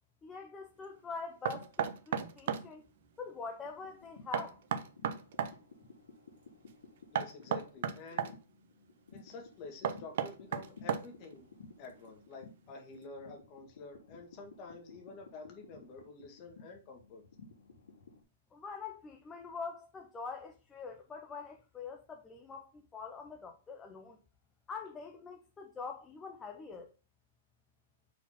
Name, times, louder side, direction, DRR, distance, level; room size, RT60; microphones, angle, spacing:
voice 1, 0.2-2.8 3.2-4.6 18.5-24.2 24.7-26.9, left 5 dB, 10° left, 0.5 m, -44 dB
Knock, 1.4-2.7 4.3-5.6 7.1-8.3 9.8-11.3, right 8 dB, 55° right, 0.6 m, -34 dB
sound 1, 3.6-18.2, left 4 dB, 85° left, 1.7 m, -56 dB
voice 2, 7.1-8.4 9.1-11.5 11.8-17.2, left 4 dB, 30° left, 1.7 m, -49 dB
4.7 x 4.1 x 5.6 m
hypercardioid pair, 160°, 0 cm